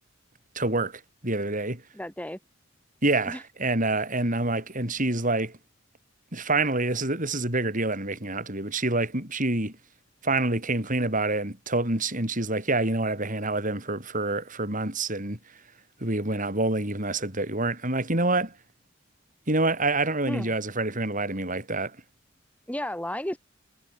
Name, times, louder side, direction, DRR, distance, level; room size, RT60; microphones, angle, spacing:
voice 1, 0.6-1.8 3.0-5.6 6.3-9.7 10.2-15.4 16.0-18.5 19.5-22.0, right 2 dB, 40° right, 7.3 m, -27 dB
voice 2, 1.9-2.4 3.3-3.4 20.3-20.5 22.7-23.4, left 1 dB, 5° left, 5.7 m, -33 dB
head